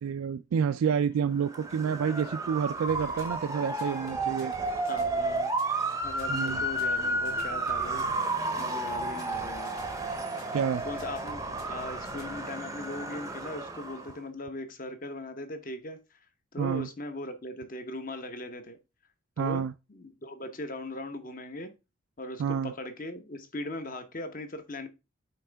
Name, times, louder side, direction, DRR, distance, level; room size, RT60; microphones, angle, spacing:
voice 1, 0.0-4.5 6.3-6.6 10.5-10.8 16.6-16.9 19.4-19.7 22.4-22.7, right 7 dB, 85° right, 0.3 m, -29 dB
Motor vehicle (road) / Siren, 1.4-14.1, right 2 dB, 15° right, 0.6 m, -32 dB
sound 1, 2.9-12.5, left 2 dB, 85° left, 1.9 m, -49 dB
voice 2, 4.9-8.1 8.6-9.7 10.8-16.2 16.5-18.8 19.4-21.7 22.2-24.9, left 1 dB, 40° left, 0.9 m, -39 dB
9.0 x 3.6 x 3.4 m
head